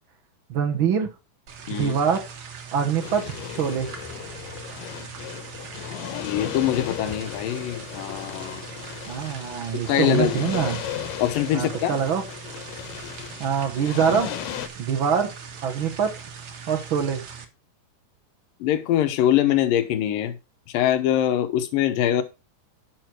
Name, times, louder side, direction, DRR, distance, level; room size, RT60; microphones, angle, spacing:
voice 1, 0.5-1.1 1.7-2.3 2.7-3.9 9.0-10.8 11.5-12.2 13.4-14.3 14.8-15.3 15.6-16.1 16.7-17.3, right 7 dB, 80° right, 1.1 m, -24 dB
sound 1, 1.5-17.4, right 6 dB, 50° right, 1.5 m, -40 dB
sound 2, 3.0-14.7, left 12 dB, 90° left, 2.9 m, -35 dB
voice 2, 6.3-8.6 9.7-10.4 11.2-11.9 18.6-20.4 20.7-22.2, left 11 dB, 70° left, 2.6 m, -23 dB
10.0 x 6.4 x 4.5 m
omnidirectional pair, 4.4 m